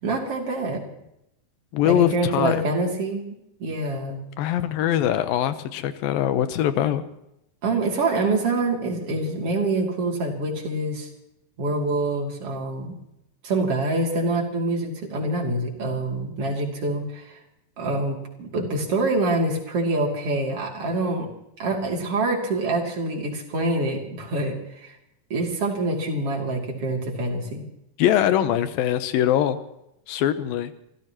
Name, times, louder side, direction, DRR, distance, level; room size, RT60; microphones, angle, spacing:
voice 1, 0.0-0.8 1.8-3.3 3.6-4.2 7.6-11.1 11.6-12.9 13.4-17.4 17.8-21.3 21.6-25.0 25.3-27.6, right 2 dB, 45° right, 0 dB, 3.6 m, -25 dB
voice 2, 1.7-2.6 4.4-7.1 28.0-29.6 30.1-30.7, left 11 dB, 85° left, 11 dB, 2.7 m, -22 dB
28.5 x 15.0 x 3.0 m, 0.83 s
omnidirectional pair, 4.1 m